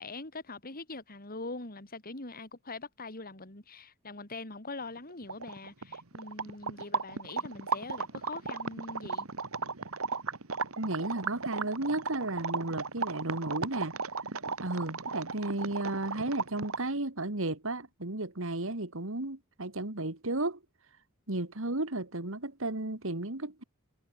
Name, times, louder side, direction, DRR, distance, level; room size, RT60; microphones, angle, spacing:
voice 1, 0.0-9.3, left 3 dB, 45° left, 3.9 m, -43 dB
sound 1, 5.0-5.1 5.2-17.0, right 4 dB, 90° right, 2.0 m, -35 dB
voice 2, 10.8-13.9 14.6-20.6 21.3-23.6, right 2 dB, 70° right, 2.6 m, -33 dB
head